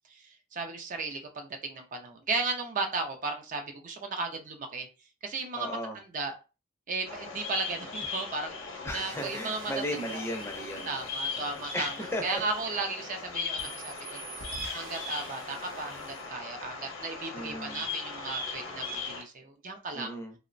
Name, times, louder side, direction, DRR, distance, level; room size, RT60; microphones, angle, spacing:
voice 1, 0.2-4.9 5.2-6.3 6.9-8.5 8.9-9.7 10.1-10.2 10.8-14.2 14.7-20.2, right 3 dB, 40° right, 0.4 m, -35 dB
voice 2, 5.5-6.0 8.8-10.9 11.7-12.4 13.6-13.9 17.3-17.9 19.9-20.3, equal, 15° left, 0.5 m, -36 dB
Bird vocalization bird call bird song, 7.1-19.2, left 4 dB, 70° left, 0.7 m, -38 dB
sound 1, 8.9-13.2 13.6-16.3, right 3 dB, 80° right, 0.7 m, -47 dB
2.8 x 2.0 x 2.5 m
head